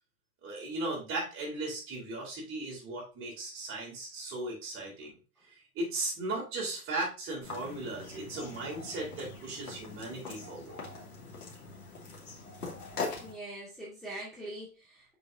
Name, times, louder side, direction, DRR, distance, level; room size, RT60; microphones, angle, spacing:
voice 1, 0.4-5.2 5.7-10.8, right 2 dB, 30° right, -2 dB, 3.9 m, -37 dB
sound 1, 7.4-13.3, left 4 dB, 85° left, 2.5 m, -42 dB
voice 2, 13.2-15.1, right 1 dB, ahead, -9 dB, 2.4 m, -43 dB
6.6 x 5.2 x 2.8 m, 0.32 s
hypercardioid pair, 115°, 44 cm